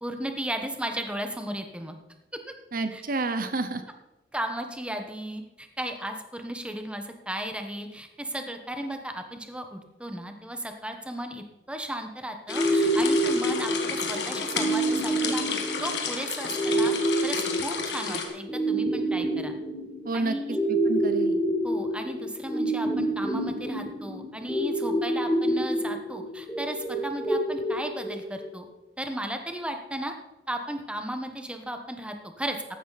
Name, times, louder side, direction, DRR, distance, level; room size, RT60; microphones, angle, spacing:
voice 1, 0.0-2.0 2.9-3.0 4.3-16.9 17.2-19.5 20.1-20.6 21.6-28.6 29.0-30.1 30.5-32.6, right 1 dB, 5° right, 5 dB, 1.2 m, -35 dB
voice 2, 2.7-3.8 20.0-21.4, right 3 dB, 55° right, 10 dB, 0.8 m, -30 dB
sound 1, 12.5-18.3, left 5 dB, 75° left, 1.9 m, -32 dB
sound 2, 12.5-28.5, right 1 dB, 10° left, 2.4 m, -28 dB
14.5 x 12.0 x 4.2 m, 1.0 s
head